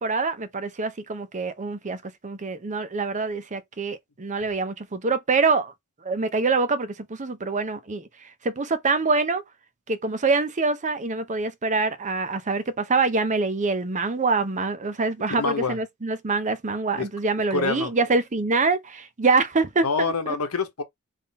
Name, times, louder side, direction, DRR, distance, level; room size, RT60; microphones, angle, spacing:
voice 1, 0.0-5.7 6.0-8.1 8.4-9.4 9.9-20.1, right 3 dB, 35° right, 0.7 m, -25 dB
voice 2, 15.4-15.8 17.0-17.1 17.5-17.9 19.8-20.8, left 4 dB, 90° left, 1.0 m, -26 dB
3.8 x 2.6 x 3.9 m
head